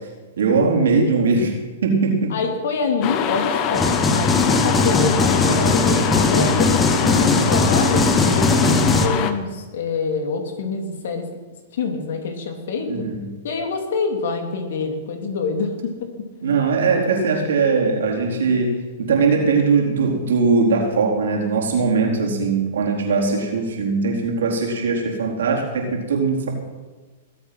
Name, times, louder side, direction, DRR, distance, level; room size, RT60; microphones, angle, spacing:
voice 1, 0.4-1.6 1.8-2.3 12.9-13.2 16.4-26.5, right 4 dB, 80° right, 0 dB, 4.3 m, -20 dB
voice 2, 2.3-3.9 4.1-11.3 11.7-12.9 13.4-16.1, left 4 dB, 70° left, 5 dB, 3.0 m, -26 dB
sound 1, 3.0-9.3, left 8 dB, 40° left, 1.3 m, -24 dB
sound 2, 3.7-9.1, left 3 dB, 10° left, 1.5 m, -19 dB
20.5 x 8.1 x 6.2 m, 1.3 s
hypercardioid pair, 130°, 0 cm